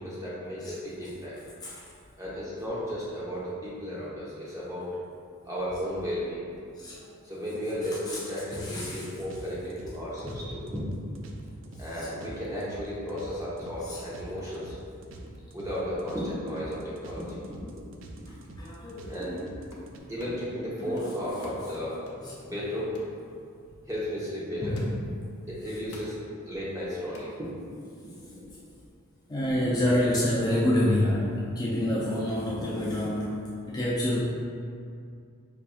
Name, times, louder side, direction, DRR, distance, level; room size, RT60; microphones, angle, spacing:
voice 1, 0.0-1.4 2.2-4.9 5.5-6.4 7.2-11.1 11.5-14.7 15.1-18.4 19.1-19.4 20.1-22.0 22.4-22.9 23.9-24.8 25.5-26.2 26.5-27.5 28.0-28.5 29.4-29.5 31.1-31.2, equal, 15° right, -8 dB, 0.8 m, -34 dB
voice 2, 8.5-9.1 10.2-10.4 12.0-12.1 13.8-14.0 17.6-17.8 18.6-19.9 20.8-21.0 22.2-22.3 24.6-25.0 29.3-34.2, left 1 dB, 20° left, -6 dB, 0.3 m, -28 dB
sound 1, 9.3-20.0, right 2 dB, 65° right, 0.3 m, -46 dB
sound 2, 19.7-19.9 20.2-20.6 21.0-22.4 22.9-23.2 23.7-23.8 24.8-25.2 25.9-26.2 27.1-27.3, left 2 dB, 90° left, 0.6 m, -47 dB
5.4 x 2.5 x 2.3 m, 2.4 s
head